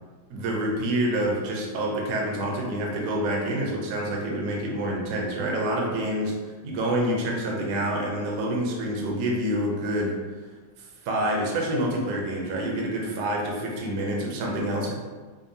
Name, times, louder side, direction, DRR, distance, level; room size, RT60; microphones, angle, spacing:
voice 1, 0.3-6.3 6.6-10.1 11.0-14.9, right 1 dB, 65° right, -1 dB, 1.1 m, -27 dB
5.2 x 2.3 x 2.7 m, 1.4 s
omnidirectional pair, 2.2 m